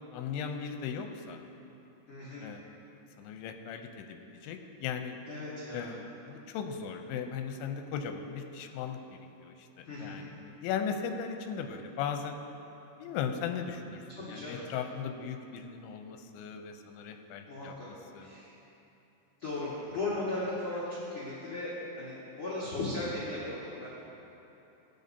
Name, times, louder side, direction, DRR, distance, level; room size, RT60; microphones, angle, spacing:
voice 1, 0.1-1.4 2.4-2.7 3.2-4.2 4.4-5.2 5.7-9.0 9.4-12.4 13.0-14.0 14.3-17.7 18.1-18.3, left 7 dB, 90° left, 6 dB, 2.9 m, -37 dB
voice 2, 2.1-2.5 5.3-5.9 9.8-10.2 14.1-14.7 17.5-17.9 18.2-18.5 19.4-23.9, left 2 dB, 55° left, -10 dB, 1.4 m, -37 dB
15.5 x 8.7 x 2.7 m, 3.0 s
omnidirectional pair, 5.2 m